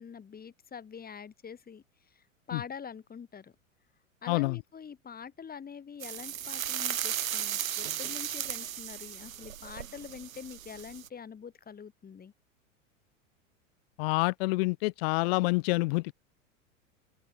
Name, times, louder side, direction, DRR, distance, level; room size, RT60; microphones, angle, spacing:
voice 1, 0.0-1.8 2.5-3.5 4.2-12.3, left 7 dB, 20° left, 6.7 m, -45 dB
sound 1, 6.0-11.1, right 10 dB, 75° right, 1.9 m, -36 dB
voice 2, 14.0-16.1, left 24 dB, 50° left, 0.5 m, -27 dB
hypercardioid pair, 95°, 40 cm